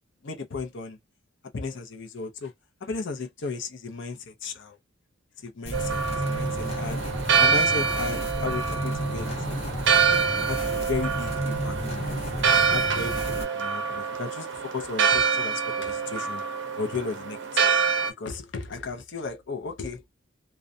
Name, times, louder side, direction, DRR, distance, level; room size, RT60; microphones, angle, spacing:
voice 1, 0.2-1.0 1.5-2.5 2.8-4.8 5.4-6.0 6.3-7.0 7.4-9.3 10.5-16.4 16.8-17.4 18.2-20.0, left 4 dB, 60° left, 0.6 m, -35 dB
sound 1, 5.6-13.4, equal, 30° left, 0.8 m, -32 dB
Church bell, 5.7-18.1, right 6 dB, 55° right, 0.5 m, -26 dB
2.4 x 2.1 x 2.5 m
head